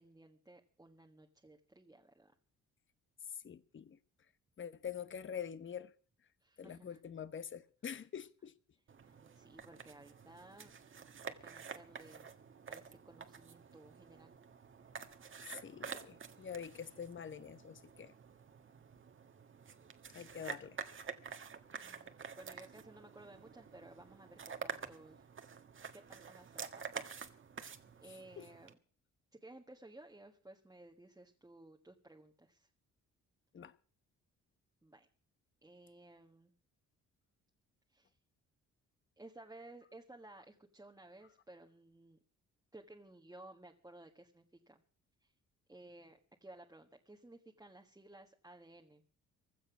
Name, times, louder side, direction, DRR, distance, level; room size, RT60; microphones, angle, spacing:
voice 1, 0.0-2.3 6.4-7.0 9.0-10.8 11.2-12.3 12.7-14.3 20.3-20.4 21.8-25.3 25.9-27.2 28.0-28.8 29.3-32.7 34.8-35.1 35.6-36.5 37.9-38.2 39.2-42.2 42.7-44.8 45.2-45.3 45.7-49.0, right 2 dB, 10° right, 1.5 m, -57 dB
voice 2, 3.4-4.0 4.6-5.9 6.6-8.5 15.4-18.1 20.1-20.8 28.4-28.5 33.5-33.7, left 8 dB, 40° left, 1.1 m, -45 dB
sound 1, 8.9-28.7, right 6 dB, 40° right, 1.6 m, -49 dB
16.0 x 12.5 x 6.1 m
cardioid pair, 90°, 30 cm